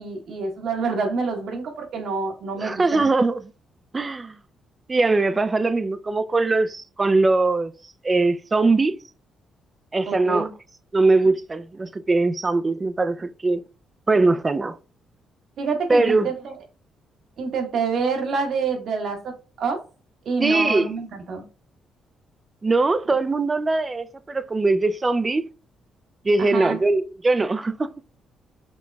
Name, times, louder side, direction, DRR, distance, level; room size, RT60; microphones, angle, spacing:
voice 1, 0.0-3.1 10.1-10.5 15.6-16.5 17.4-19.8 20.2-21.4 26.4-26.8, right 4 dB, 65° right, 1.3 m, -27 dB
voice 2, 2.6-3.4 3.9-4.4 4.9-7.7 8.0-9.0 9.9-10.5 10.9-13.6 14.1-14.8 15.9-16.3 20.4-20.9 22.6-25.5 26.2-27.9, right 3 dB, 25° right, 0.4 m, -21 dB
5.2 x 2.9 x 2.3 m
cardioid pair, 90°, 0 cm